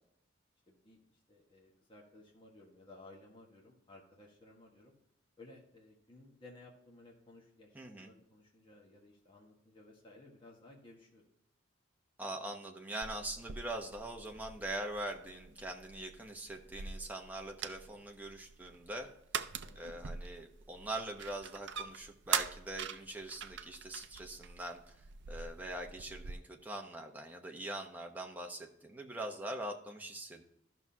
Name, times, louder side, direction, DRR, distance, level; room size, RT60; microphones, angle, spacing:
voice 1, 0.7-4.9 5.4-11.2 19.6-20.1, left 2 dB, 25° left, -2 dB, 1.5 m, -58 dB
voice 2, 7.7-8.1 12.2-19.1 19.8-30.4, right 1 dB, 10° right, 1 dB, 0.9 m, -43 dB
sound 1, 13.0-26.3, right 7 dB, 55° right, 0.5 m, -43 dB
13.0 x 6.1 x 2.8 m, 0.81 s
head